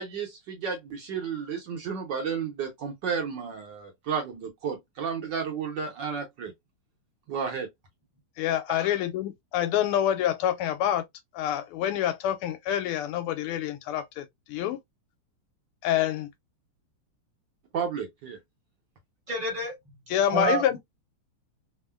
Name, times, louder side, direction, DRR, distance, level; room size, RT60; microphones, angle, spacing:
voice 1, 0.0-6.5 7.3-7.7 17.7-18.4, right 6 dB, 65° right, 1.2 m, -32 dB
voice 2, 8.4-11.0 11.3-14.8 15.8-16.3 20.1-20.8, left 11 dB, 90° left, 1.6 m, -27 dB
voice 3, 19.3-19.7 20.3-20.8, right 3 dB, 30° right, 0.9 m, -29 dB
3.6 x 2.1 x 2.2 m
omnidirectional pair, 2.4 m